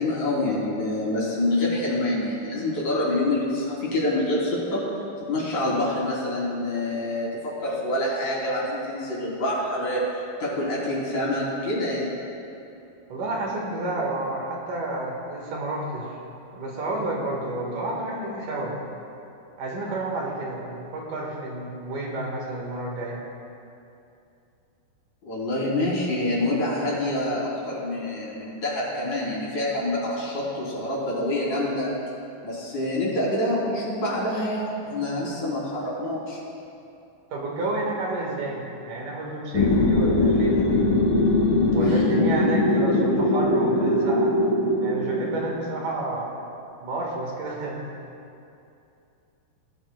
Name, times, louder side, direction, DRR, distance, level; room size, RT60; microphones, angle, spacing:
voice 1, 0.0-4.8 5.3-10.0 10.4-12.1 25.2-31.9 32.4-36.4 41.8-42.1, left 1 dB, 55° left, -6 dB, 4.4 m, -26 dB
voice 2, 13.1-16.1 16.5-18.8 19.6-23.2 37.3-40.9 41.7-44.4 44.8-46.3 46.8-47.8, right 2 dB, 65° right, -2 dB, 3.0 m, -30 dB
sound 1, 39.5-45.5, left 1 dB, 80° left, 3.2 m, -21 dB
19.5 x 13.0 x 2.2 m, 2.6 s
omnidirectional pair, 4.1 m